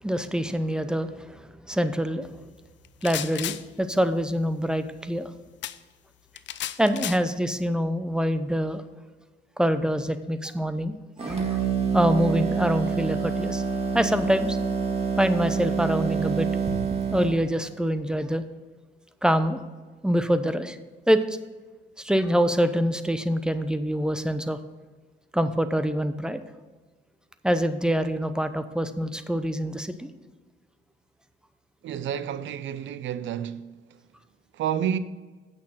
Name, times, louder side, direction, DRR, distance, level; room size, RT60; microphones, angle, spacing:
voice 1, 0.0-2.3 3.0-5.3 6.8-8.8 9.6-11.6 11.9-13.6 13.9-14.6 15.2-16.5 17.1-18.4 19.2-19.6 20.0-20.8 21.1-21.4 22.0-24.6 25.3-26.4 27.4-30.1, equal, 5° right, 0.7 m, -25 dB
sound 1, 2.8-3.6 5.6-5.8 6.4-7.2, left 12 dB, 65° left, 0.5 m, -33 dB
sound 2, 11.2-17.4, right 6 dB, 30° right, 1.9 m, -27 dB
voice 2, 31.8-33.7 34.5-35.0, right 9 dB, 70° right, 0.6 m, -29 dB
8.6 x 6.4 x 5.7 m
cardioid pair, 90°, 20 cm